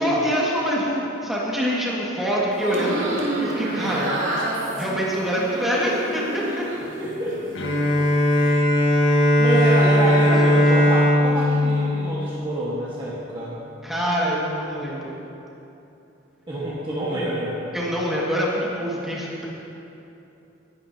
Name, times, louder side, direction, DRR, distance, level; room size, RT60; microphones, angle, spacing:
voice 1, 0.0-4.1 4.7-6.6 8.2-8.3 9.8-10.6 13.8-15.1 17.7-19.4, equal, ahead, -6 dB, 1.9 m, -25 dB
sound 1, 2.5-6.9 7.3-8.0, right 1 dB, 80° right, 2.2 m, -29 dB
voice 2, 3.6-4.1 7.0-7.4 8.3-8.6 9.0-13.6 16.5-17.6, right 1 dB, 25° right, -8 dB, 1.6 m, -27 dB
Bowed string instrument, 7.5-13.0, equal, 80° left, 1.6 m, -19 dB
19.0 x 11.5 x 2.8 m, 2.9 s
head